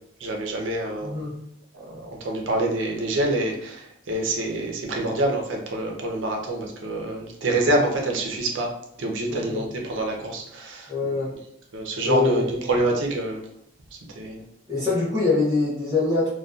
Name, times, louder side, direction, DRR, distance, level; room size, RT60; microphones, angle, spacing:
voice 1, 0.2-1.3 1.7-8.7 9.0-10.9 11.7-13.4 14.2-14.4, right 2 dB, 85° right, 1 dB, 0.5 m, -26 dB
voice 2, 1.0-1.3 9.3-9.6 10.9-11.3 12.0-12.7 14.7-16.3, left 3 dB, 15° right, -10 dB, 0.6 m, -24 dB
2.6 x 2.2 x 2.3 m, 0.72 s
head